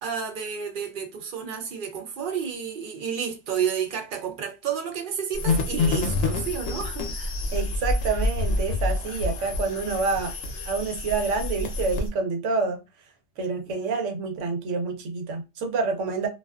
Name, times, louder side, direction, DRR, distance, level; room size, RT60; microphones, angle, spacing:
voice 1, 0.0-7.3 13.7-13.9, right 7 dB, 60° right, 0.5 m, -31 dB
sound 1, 5.3-12.1, left 2 dB, 75° left, 0.9 m, -27 dB
voice 2, 7.5-10.3 10.7-12.8 13.4-16.3, right 4 dB, 85° right, 1.0 m, -27 dB
2.4 x 2.3 x 2.3 m
omnidirectional pair, 1.2 m